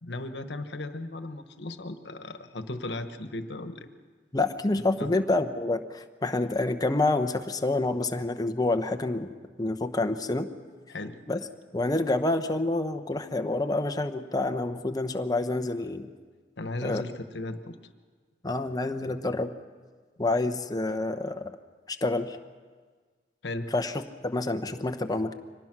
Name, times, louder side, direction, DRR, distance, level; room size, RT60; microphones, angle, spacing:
voice 1, 0.0-3.9 4.7-5.1 10.9-11.2 16.6-17.8 23.4-23.7, left 2 dB, 80° left, 9 dB, 1.2 m, -36 dB
voice 2, 4.3-10.5 11.3-11.4 11.7-16.1 16.8-17.0 18.4-19.5 20.2-21.5 21.9-22.4 23.7-25.3, left 2 dB, 20° left, 7 dB, 0.9 m, -28 dB
24.5 x 18.5 x 6.1 m, 1.5 s
head